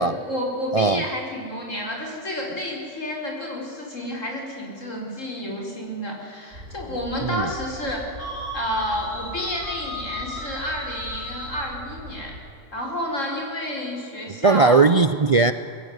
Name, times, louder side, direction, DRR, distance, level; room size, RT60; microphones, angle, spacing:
voice 1, 0.0-8.1 8.5-12.4 12.7-14.9, left 1 dB, 80° left, 0 dB, 4.9 m, -30 dB
sound 1, 6.5-12.4, right 1 dB, 55° right, 3.3 m, -41 dB
sound 2, 8.2-11.9, equal, 25° left, 3.9 m, -35 dB
voice 2, 14.4-15.5, right 4 dB, 40° right, 12 dB, 0.5 m, -18 dB
22.5 x 16.0 x 9.5 m, 2.7 s
omnidirectional pair, 1.3 m